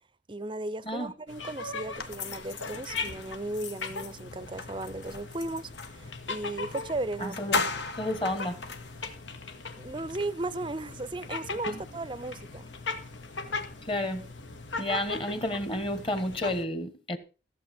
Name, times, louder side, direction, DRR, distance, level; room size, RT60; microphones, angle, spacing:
voice 1, 0.3-7.4 9.8-12.7, right 2 dB, 25° right, 0.5 m, -36 dB
sound 1, 1.3-16.6, left 4 dB, 85° left, 1.8 m, -39 dB
sound 2, 2.0-6.0 6.7-6.8 7.1-9.2, left 4 dB, 70° left, 1.7 m, -36 dB
voice 2, 7.2-7.7 8.0-8.6 11.7-11.8 13.9-14.2 14.8-17.2, left 1 dB, 30° left, 1.5 m, -31 dB
15.5 x 7.6 x 6.1 m
head